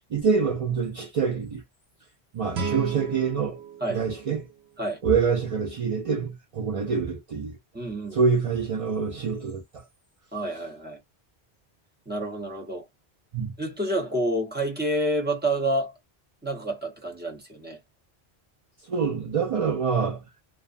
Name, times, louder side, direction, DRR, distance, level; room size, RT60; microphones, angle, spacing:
voice 1, 0.1-1.6 2.3-3.6 3.9-4.5 5.0-7.6 8.1-9.9 13.3-13.5 18.8-20.2, right 5 dB, 60° right, 0.3 m, -26 dB
Guitar, 2.5-5.3, right 5 dB, 80° right, 0.9 m, -36 dB
voice 2, 7.7-8.2 10.3-11.0 12.1-12.9 13.6-15.9 16.4-17.8, right 1 dB, 10° right, 0.7 m, -28 dB
2.3 x 2.3 x 2.5 m
omnidirectional pair, 1.1 m